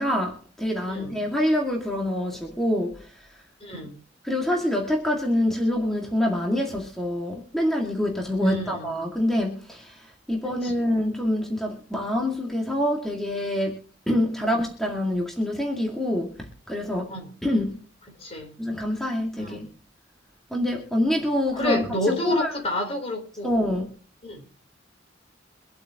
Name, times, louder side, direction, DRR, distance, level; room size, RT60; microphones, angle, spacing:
voice 1, 0.0-3.1 4.2-17.1 17.4-17.8 18.6-19.7 20.5-22.5 23.4-23.9, left 1 dB, ahead, -1 dB, 2.1 m, -26 dB
voice 2, 3.6-3.9 8.4-8.9 10.6-10.9 17.1-17.3 18.2-18.5 19.4-19.7 21.5-23.5 24.2-24.5, left 1 dB, 35° left, 2 dB, 3.9 m, -29 dB
25.0 x 8.5 x 2.9 m, 0.39 s
head